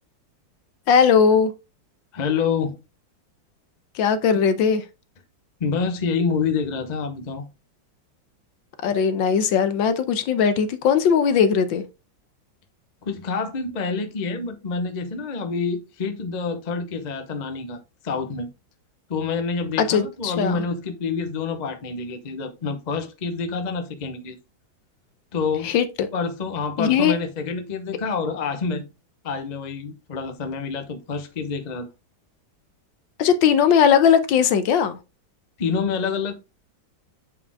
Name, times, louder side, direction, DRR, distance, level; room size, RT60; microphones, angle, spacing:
voice 1, 0.9-1.5 3.9-4.8 8.8-11.8 19.8-20.6 25.6-25.9 26.8-27.1 33.2-35.0, left 7 dB, 75° left, 1.5 m, -19 dB
voice 2, 2.1-2.7 5.6-7.5 13.0-17.8 18.0-18.5 19.1-24.4 25.3-25.7 26.1-28.8 29.2-31.9 35.6-36.4, left 5 dB, 40° left, 0.6 m, -27 dB
7.9 x 4.9 x 3.5 m
omnidirectional pair, 2.2 m